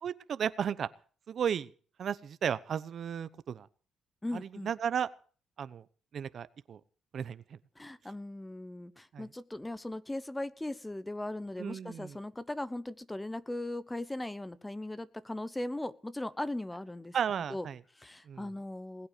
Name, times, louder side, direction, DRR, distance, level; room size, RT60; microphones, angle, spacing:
voice 1, 0.0-0.9 1.3-1.7 2.0-3.7 4.3-5.1 5.6-5.8 6.1-6.8 7.1-7.4 9.1-9.3 11.6-12.2 17.1-17.8 18.3-18.4, right 8 dB, 55° right, 15 dB, 0.9 m, -34 dB
voice 2, 4.2-4.7 7.8-17.2 17.5-17.7 18.0-19.1, left 1 dB, 10° left, 16 dB, 0.9 m, -38 dB
20.0 x 8.8 x 6.7 m, 0.43 s
cardioid pair, 90°, 0 cm